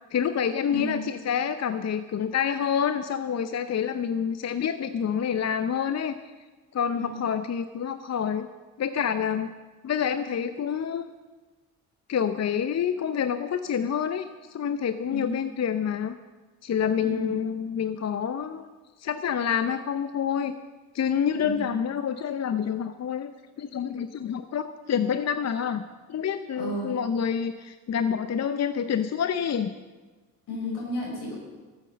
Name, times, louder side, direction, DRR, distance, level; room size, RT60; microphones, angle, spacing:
voice 1, 0.1-6.2 6.7-8.5 8.8-9.5 9.8-11.1 12.1-16.1 16.6-18.7 19.0-20.6 20.9-23.3 23.6-25.8 26.1-29.7, left 8 dB, 40° left, 11 dB, 0.7 m, -27 dB
voice 2, 0.7-1.1 6.9-7.3 15.1-15.4 17.0-17.4 21.4-21.8 26.6-27.0 30.5-31.4, left 1 dB, 75° left, -3 dB, 5.6 m, -33 dB
13.5 x 9.0 x 6.8 m, 1.3 s
hypercardioid pair, 50°, 39 cm